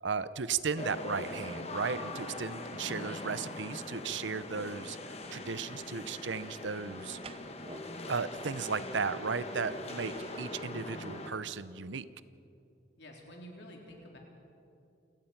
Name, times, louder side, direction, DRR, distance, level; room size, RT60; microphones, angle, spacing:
voice 1, 0.0-7.2 8.1-12.0, right 5 dB, 70° right, 15 dB, 0.7 m, -35 dB
sound 1, 0.8-11.3, left 2 dB, 30° left, 1.3 m, -42 dB
sound 2, 5.2-10.7, right 4 dB, 30° right, 0.5 m, -53 dB
voice 2, 13.0-14.2, equal, 65° left, 0 dB, 3.9 m, -49 dB
29.0 x 16.5 x 5.9 m, 2.6 s
head